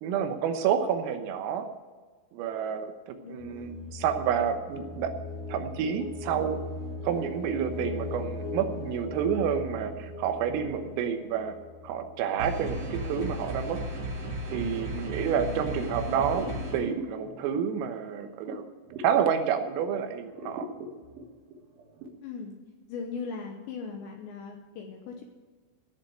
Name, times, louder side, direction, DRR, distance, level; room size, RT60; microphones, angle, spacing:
voice 1, 0.0-1.7 2.3-5.1 5.5-6.6 7.0-11.6 11.8-13.8 14.5-18.6 19.0-20.7, right 8 dB, 90° right, 7 dB, 3.8 m, -29 dB
voice 2, 3.2-3.9 15.5-16.0 22.2-22.5 22.9-25.2, left 5 dB, 70° left, 3 dB, 3.1 m, -39 dB
sound 1, 3.4-13.2, left 2 dB, 50° left, 4.0 m, -39 dB
sound 2, 12.4-16.8, equal, 45° right, 2.6 m, -35 dB
sound 3, 15.3-19.9 20.2-22.1, right 1 dB, 60° right, 3.3 m, -42 dB
17.0 x 7.0 x 7.8 m, 1.4 s
omnidirectional pair, 5.8 m